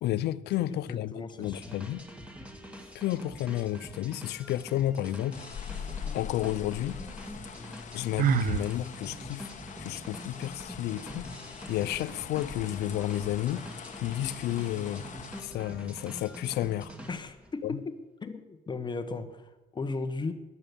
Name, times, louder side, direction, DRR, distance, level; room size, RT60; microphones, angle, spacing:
voice 1, 0.0-2.0 2.9-5.4 6.1-7.0 7.9-9.5 9.8-11.3 11.7-13.7 14.0-15.0 15.4-16.9 17.6-17.7, left 13 dB, 75° left, 0.7 m, -31 dB
voice 2, 0.9-1.8 17.1-18.0 18.2-20.3, left 3 dB, 25° left, 1.5 m, -36 dB
sound 1, 1.4-17.5, equal, 5° right, 2.4 m, -45 dB
sound 2, 5.3-15.4, left 7 dB, 45° left, 1.5 m, -43 dB
Sigh, 8.2-8.7, right 11 dB, 55° right, 0.6 m, -25 dB
14.5 x 11.0 x 7.1 m
cardioid pair, 110°, 17 cm